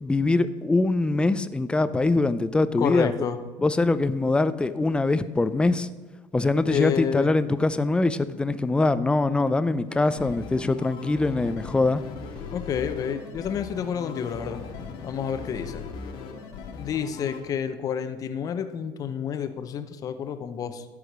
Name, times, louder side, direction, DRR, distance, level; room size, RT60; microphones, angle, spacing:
voice 1, 0.0-3.2 3.6-5.9 6.3-12.0, left 2 dB, 10° left, 14 dB, 0.4 m, -23 dB
voice 2, 2.8-3.4 6.7-7.3 12.5-14.6 15.0-15.9 16.8-20.9, left 8 dB, 45° left, 9 dB, 0.8 m, -29 dB
sound 1, 9.9-17.4, left 5 dB, 75° left, 1.6 m, -39 dB
13.5 x 4.9 x 6.0 m, 1.2 s
cardioid pair, 120°, 9 cm